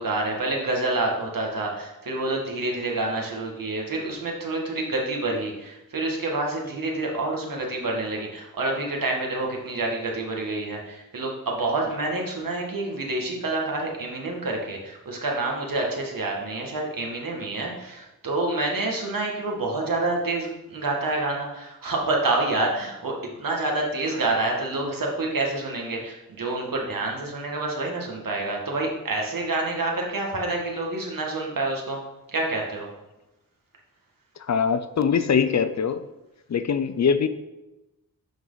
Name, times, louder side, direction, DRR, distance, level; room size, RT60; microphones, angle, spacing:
voice 1, 0.0-32.0 32.3-32.9, right 2 dB, 70° right, 0 dB, 1.9 m, -28 dB
voice 2, 34.5-36.0 36.5-37.3, left 6 dB, 50° left, 12 dB, 0.5 m, -22 dB
12.0 x 4.6 x 4.0 m, 1.0 s
wide cardioid pair, 100°, 35 cm